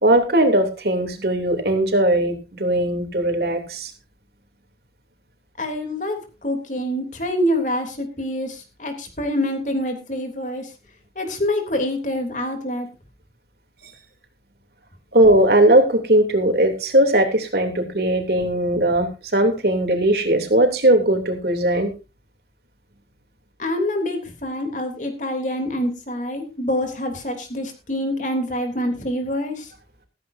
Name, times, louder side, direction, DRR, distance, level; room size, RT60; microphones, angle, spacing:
voice 1, 0.0-3.9 15.1-21.9, right 1 dB, 65° right, 5 dB, 3.1 m, -18 dB
voice 2, 5.6-10.7 11.1-12.9 23.6-29.7, left 1 dB, 45° left, 5 dB, 3.3 m, -26 dB
15.5 x 15.0 x 2.7 m, 0.30 s
head